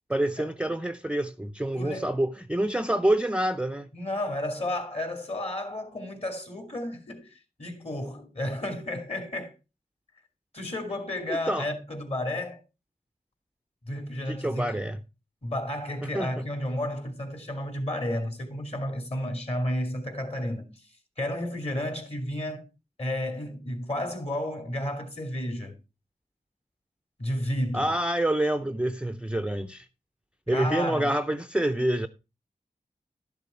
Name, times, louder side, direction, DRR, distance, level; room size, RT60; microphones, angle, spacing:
voice 1, 0.1-3.9 11.5-11.7 14.4-15.0 16.0-16.4 27.7-29.9 30.5-32.1, right 1 dB, 5° right, 0.5 m, -27 dB
voice 2, 1.8-2.1 3.9-9.5 10.5-12.6 13.8-14.8 15.4-20.9 21.2-22.7 23.0-25.8 27.2-27.9 30.5-31.1, left 1 dB, 40° left, 2.6 m, -32 dB
12.0 x 6.8 x 4.3 m
wide cardioid pair, 90°, 16 cm